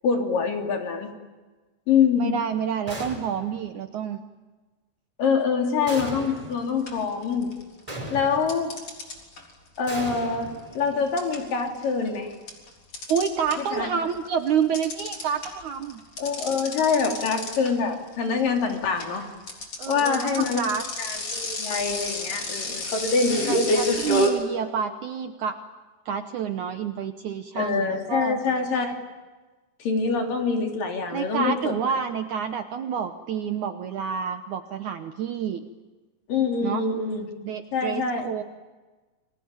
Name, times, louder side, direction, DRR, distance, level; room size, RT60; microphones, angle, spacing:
voice 1, 0.0-1.1 1.9-2.4 5.2-7.5 8.1-8.7 9.8-10.5 10.8-12.3 13.7-13.9 16.2-19.3 19.9-20.6 21.0-23.7 27.6-29.0 29.8-31.8 36.3-37.3 37.7-38.3, left 5 dB, 60° left, 3 dB, 4.5 m, -25 dB
voice 2, 2.2-4.2 13.1-16.0 19.8-20.8 23.5-25.6 26.1-28.4 31.1-35.6 36.6-36.8 37.4-38.4, right 7 dB, 65° right, 7 dB, 2.0 m, -28 dB
sound 1, 2.9-3.6 5.9-6.7 7.9-8.6 9.9-11.1, right 1 dB, 10° right, 4.5 m, -37 dB
sound 2, 6.3-6.5 6.9-7.8 8.5-13.9 14.2-24.3, left 1 dB, 35° left, 4.4 m, -30 dB
29.5 x 22.0 x 9.0 m, 1.3 s
omnidirectional pair, 4.6 m